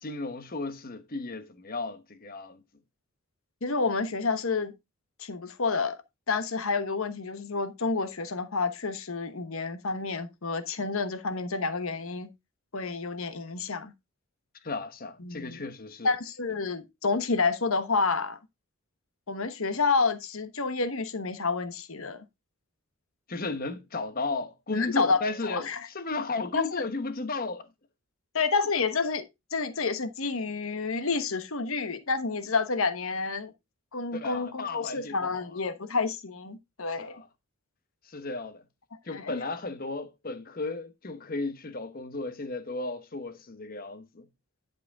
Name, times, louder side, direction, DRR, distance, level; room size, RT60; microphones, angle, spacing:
voice 1, 0.0-2.6 14.6-16.1 23.3-27.6 34.1-35.6 37.0-37.3 38.0-38.6 39.0-44.3, left 3 dB, 40° left, 1.0 m, -34 dB
voice 2, 3.6-4.7 5.2-6.0 6.3-12.3 12.7-13.9 15.2-15.6 16.0-18.4 19.3-22.2 24.7-25.9 26.5-26.8 28.3-29.2 29.5-33.5 33.9-37.2 39.1-39.4, left 4 dB, 70° left, 1.1 m, -29 dB
11.0 x 5.0 x 3.5 m
head